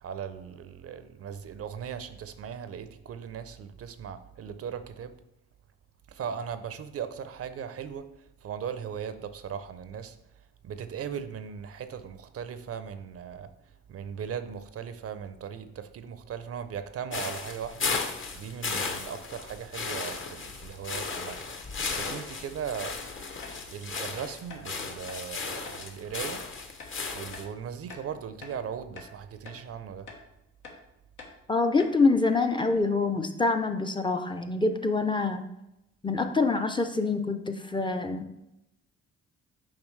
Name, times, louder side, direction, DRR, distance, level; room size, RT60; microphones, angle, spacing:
voice 1, 0.0-5.2 6.1-8.1 8.4-10.2 10.6-13.5 13.9-17.9 18.3-21.5 22.0-23.0 23.7-26.4 27.1-30.1, right 7 dB, 50° right, 0.5 m, -38 dB
sound 1, 17.1-27.5, left 4 dB, 40° left, 0.9 m, -35 dB
sound 2, 23.4-23.6 23.9-24.1 24.5-24.6 25.1-25.2 25.6-25.8 26.2-26.4 26.8-26.9 27.3-27.5 27.9-28.6 28.9-29.1 29.4-29.6 30.1-30.2 30.6-30.8 31.2-31.4 31.8-32.0 32.2-32.3 32.6-32.8, left 4 dB, 90° left, 1.2 m, -45 dB
voice 2, 31.5-35.4 36.0-38.2, left 3 dB, 15° left, 0.5 m, -26 dB
7.3 x 4.8 x 3.1 m
cardioid pair, 90°, 30 cm